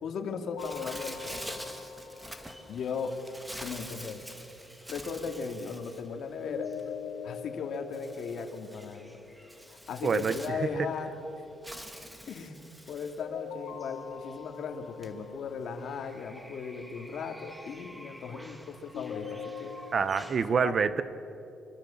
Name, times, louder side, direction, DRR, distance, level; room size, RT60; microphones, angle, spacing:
voice 1, 0.0-1.6 2.7-3.2 3.6-4.4 4.9-6.7 7.2-9.2 9.7-11.1 12.2-12.6 12.9-19.8 20.5-21.0, left 5 dB, 60° left, 5 dB, 2.3 m, -37 dB
sound 1, 0.5-3.5 6.4-9.5 13.2-16.4 18.9-20.4, left 7 dB, 90° left, 2.0 m, -43 dB
Bird, 0.6-20.5, equal, 5° right, 1.8 m, -47 dB
voice 2, 10.0-10.4 19.9-21.0, right 6 dB, 40° right, 14 dB, 0.8 m, -26 dB
25.5 x 22.0 x 7.1 m, 2.9 s
cardioid pair, 135°, 0 cm